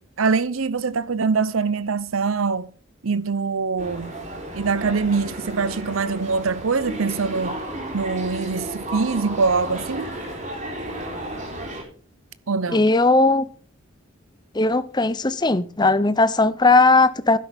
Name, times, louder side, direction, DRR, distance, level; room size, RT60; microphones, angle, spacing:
voice 1, 0.2-2.7 3.0-4.1 4.5-7.6 7.9-10.1 12.5-12.9, right 4 dB, 85° right, 0.7 m, -23 dB
sound 1, 3.8-11.8, right 1 dB, 35° right, 4.3 m, -33 dB
voice 2, 12.7-13.4 14.5-17.4, left 3 dB, 20° left, 0.7 m, -18 dB
12.0 x 10.5 x 5.2 m
head